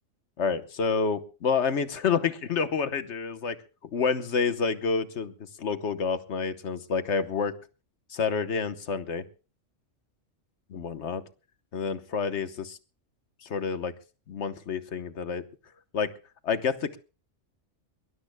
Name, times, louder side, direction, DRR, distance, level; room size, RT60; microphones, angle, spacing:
voice 1, 0.4-3.6 3.9-7.5 8.1-9.2 10.7-11.2 11.7-12.8 13.4-13.9 14.3-15.4 15.9-16.1 16.4-17.0, left 5 dB, 65° left, 12 dB, 1.3 m, -28 dB
22.5 x 20.0 x 2.2 m, 0.34 s
omnidirectional pair, 1.3 m